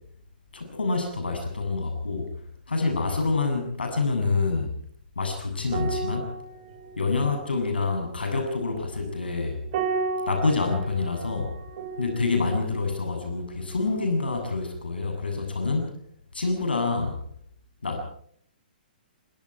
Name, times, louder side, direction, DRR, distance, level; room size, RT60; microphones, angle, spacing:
voice 1, 0.5-2.3 2.7-4.7 5.2-6.3 7.0-9.6 10.3-11.5 12.0-16.0 16.3-17.2 17.8-18.0, left 3 dB, 85° left, 4 dB, 7.8 m, -27 dB
sound 1, 5.7-14.4 14.7-14.9, right 4 dB, 50° right, 3.2 m, -35 dB
26.0 x 24.0 x 4.7 m, 0.62 s
hypercardioid pair, 125°, 5 cm